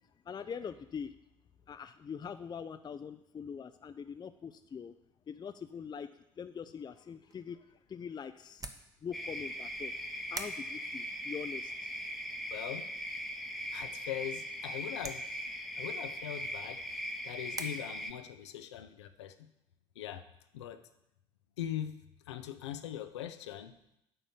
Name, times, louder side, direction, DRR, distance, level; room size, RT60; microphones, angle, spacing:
voice 1, 0.3-1.1 1.7-4.9 5.3-6.1 6.4-8.7 9.0-9.9 10.3-11.7, left 7 dB, 30° left, 10 dB, 0.5 m, -43 dB
sound 1, 7.2-17.7, right 3 dB, 25° right, 1.1 m, -50 dB
sound 2, 9.1-18.1, equal, ahead, 1.0 m, -40 dB
voice 2, 12.5-12.9 13.7-15.2 15.8-16.8 17.2-19.3 20.0-20.2 20.5-20.8 21.6-21.9 22.3-23.7, left 11 dB, 75° left, 10 dB, 0.6 m, -41 dB
11.0 x 4.1 x 7.2 m, 0.83 s
figure-of-eight pair, 50°, 14 cm